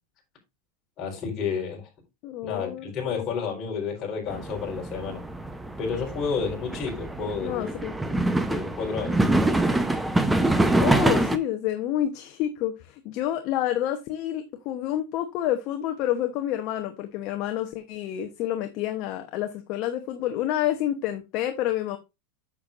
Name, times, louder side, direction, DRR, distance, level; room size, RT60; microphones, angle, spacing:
voice 1, 1.0-1.9 2.4-5.2 5.8-7.8 8.5-9.2, left 5 dB, 30° left, 4.2 m, -31 dB
voice 2, 2.2-3.4 7.4-7.9 10.8-22.0, left 12 dB, 50° left, 0.9 m, -29 dB
sound 1, 4.3-11.4, right 2 dB, 5° right, 0.8 m, -25 dB
8.6 x 6.9 x 2.5 m
supercardioid pair, 135°, 0 cm